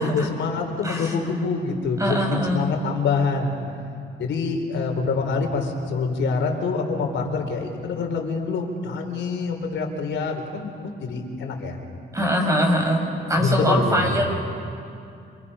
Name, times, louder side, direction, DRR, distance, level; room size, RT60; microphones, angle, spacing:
voice 1, 0.0-3.5 4.2-11.8 13.4-14.1, left 4 dB, 70° left, 3 dB, 4.0 m, -25 dB
voice 2, 0.8-1.1 2.0-2.7 12.1-14.3, equal, 15° right, 1 dB, 6.5 m, -23 dB
27.5 x 27.0 x 5.7 m, 2.5 s
cardioid pair, 90°, 20 cm